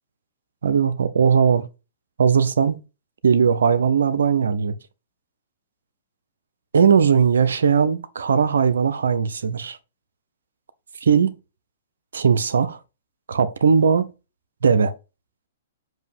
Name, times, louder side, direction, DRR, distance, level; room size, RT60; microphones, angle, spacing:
voice 1, 0.6-1.7 2.2-2.8 3.2-4.7 6.7-9.8 11.0-11.4 12.1-12.8 13.3-14.1 14.6-14.9, right 6 dB, 80° right, 0.7 m, -18 dB
7.5 x 2.9 x 5.3 m
hypercardioid pair, 125°, 0 cm